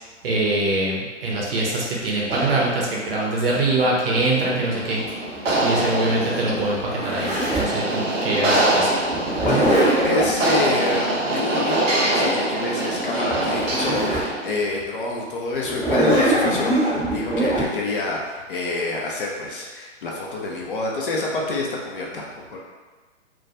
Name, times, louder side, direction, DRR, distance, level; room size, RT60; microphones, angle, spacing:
voice 1, 0.2-5.0 5.6-8.9, right 2 dB, 50° right, -3 dB, 0.7 m, -23 dB
sound 1, 2.2-14.6, right 1 dB, 85° right, 0.6 m, -25 dB
Zipper (clothing), 5.1-7.8 9.1-10.4 13.0-13.1 13.3-14.3 14.8-14.9 15.6-17.6, right 1 dB, 5° right, 0.6 m, -22 dB
voice 2, 9.4-22.6, left 3 dB, 45° left, -2 dB, 0.5 m, -27 dB
2.2 x 2.2 x 2.7 m, 1.3 s
figure-of-eight pair, 120°, 37 cm